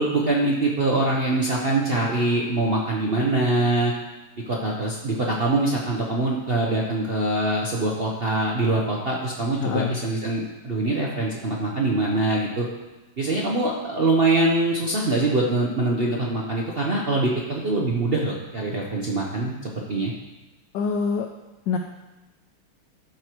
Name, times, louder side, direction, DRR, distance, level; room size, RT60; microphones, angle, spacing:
voice 1, 0.0-3.9 4.5-12.7 13.2-20.1, right 2 dB, 50° right, -3 dB, 0.7 m, -23 dB
voice 2, 9.6-10.0 20.7-21.3 21.7-21.8, left 6 dB, 75° left, 4 dB, 1.1 m, -25 dB
12.0 x 4.8 x 4.6 m, 1.1 s
omnidirectional pair, 2.3 m